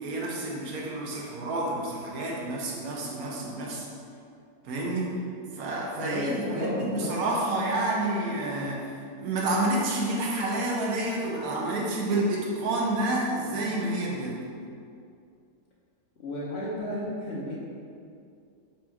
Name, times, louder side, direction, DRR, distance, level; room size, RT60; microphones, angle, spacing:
voice 1, 0.0-3.9 4.6-5.1 5.6-14.4, right 2 dB, 65° right, -2 dB, 1.1 m, -29 dB
voice 2, 6.0-7.1 16.2-17.6, left 1 dB, 50° left, -6 dB, 0.8 m, -32 dB
4.3 x 2.4 x 4.4 m, 2.4 s
omnidirectional pair, 1.7 m